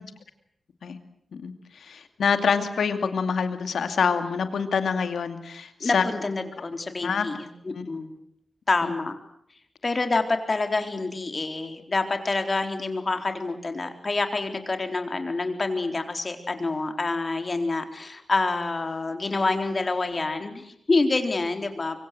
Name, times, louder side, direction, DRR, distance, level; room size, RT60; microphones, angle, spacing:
voice 1, 1.9-6.0 7.0-7.3 7.7-7.8, left 6 dB, 90° left, 9 dB, 2.4 m, -26 dB
voice 2, 5.8-8.1 8.7-9.2 9.8-22.0, left 3 dB, 45° left, 7 dB, 4.0 m, -27 dB
24.5 x 24.5 x 7.8 m, 0.68 s
cardioid pair, 60°, 0 cm